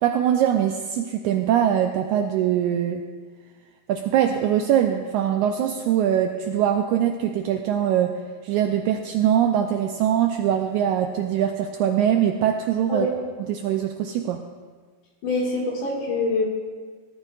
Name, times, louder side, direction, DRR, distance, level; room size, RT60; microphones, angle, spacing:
voice 1, 0.0-3.0 3.9-8.2 8.4-13.1 13.5-14.4, right 10 dB, 85° right, 4 dB, 1.7 m, -22 dB
voice 2, 15.2-16.4, left 2 dB, 65° left, -1 dB, 3.4 m, -24 dB
18.0 x 13.0 x 2.4 m, 1.5 s
omnidirectional pair, 4.0 m